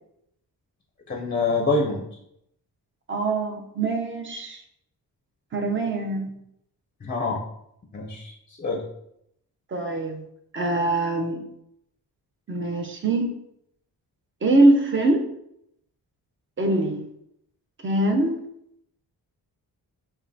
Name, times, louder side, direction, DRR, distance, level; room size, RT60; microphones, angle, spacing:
voice 1, 1.1-2.1 7.0-7.4 7.9-8.3 8.6-8.8, left 3 dB, 25° left, 0 dB, 0.5 m, -25 dB
voice 2, 3.1-4.6 5.5-6.3 9.7-10.2 10.5-11.4 12.5-13.3 14.4-15.2 16.6-17.1 17.8-18.4, right 2 dB, 30° right, 3 dB, 0.6 m, -23 dB
5.3 x 2.2 x 2.7 m, 0.77 s
cardioid pair, 95°, 39 cm